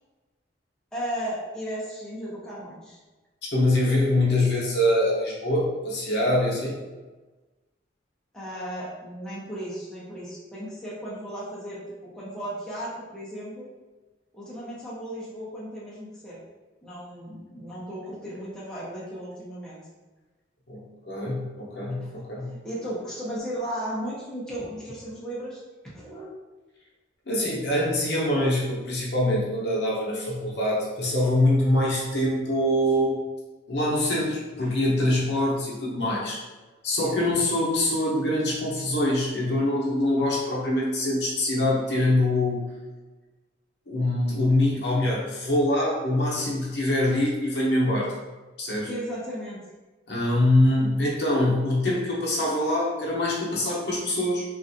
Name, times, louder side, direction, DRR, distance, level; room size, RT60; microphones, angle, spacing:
voice 1, 0.9-3.0 8.3-11.8 12.1-13.7 14.3-16.4 16.8-19.8 22.0-26.3 37.0-37.2 48.9-49.6, equal, 5° left, -9 dB, 0.7 m, -35 dB
voice 2, 3.5-6.8 20.7-22.6 27.3-33.2 33.7-36.4 36.8-42.6 43.9-48.2 48.6-48.9 50.1-54.4, left 1 dB, 70° left, -4 dB, 0.7 m, -24 dB
3.1 x 2.5 x 2.6 m, 1.2 s
head